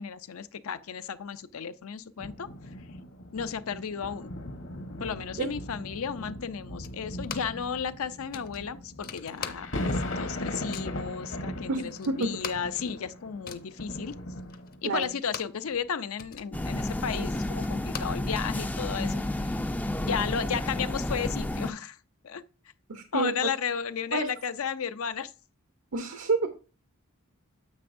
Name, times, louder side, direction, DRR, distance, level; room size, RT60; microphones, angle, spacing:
voice 1, 0.0-2.5 3.3-4.3 5.0-14.1 14.8-19.5 20.0-22.0 22.2-22.4 23.1-25.3, left 7 dB, 80° left, 0.5 m, -34 dB
sound 1, 2.2-15.0 15.7-15.8, left 1 dB, 60° left, 1.1 m, -38 dB
sound 2, 6.8-7.7 7.9-8.0 8.3-10.0 10.3-11.0 11.5-11.6 11.8-15.7 16.0-18.7, left 7 dB, 45° left, 0.7 m, -42 dB
voice 2, 11.7-12.3 14.8-15.1 22.9-23.5 24.1-24.3 25.9-26.5, right 3 dB, 80° right, 0.8 m, -28 dB
sound 3, 16.5-21.7, left 1 dB, 5° left, 0.3 m, -31 dB
9.5 x 7.7 x 2.6 m
head